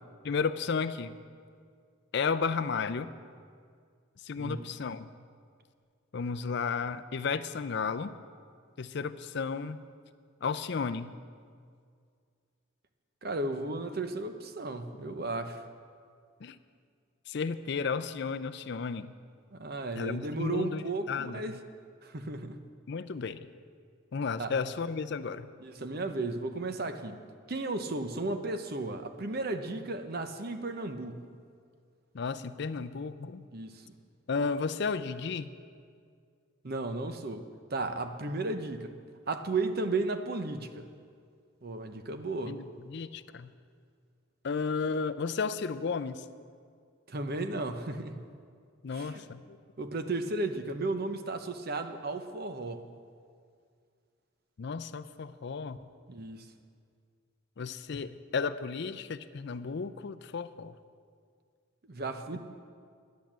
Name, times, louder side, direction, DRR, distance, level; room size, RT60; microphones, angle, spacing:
voice 1, 0.2-1.2 2.1-3.1 4.2-5.1 6.1-8.1 8.8-9.8 10.4-11.1 16.4-16.6 17.3-19.1 20.0-21.6 22.9-23.4 24.1-25.5 32.1-33.5 34.3-35.5 42.5-43.5 44.4-46.2 48.8-49.6 54.6-55.8 57.6-60.7, left 5 dB, 55° left, 11 dB, 0.4 m, -33 dB
voice 2, 4.4-4.7 13.2-15.6 19.5-21.6 22.0-22.6 24.4-24.5 25.6-27.2 27.5-31.3 33.5-33.9 36.6-37.4 37.7-38.9 39.3-40.9 41.6-42.6 47.1-48.2 48.9-49.2 49.8-52.8 56.1-56.5 61.9-62.4, right 2 dB, 50° right, 8 dB, 0.8 m, -34 dB
10.5 x 10.5 x 7.3 m, 2.1 s
head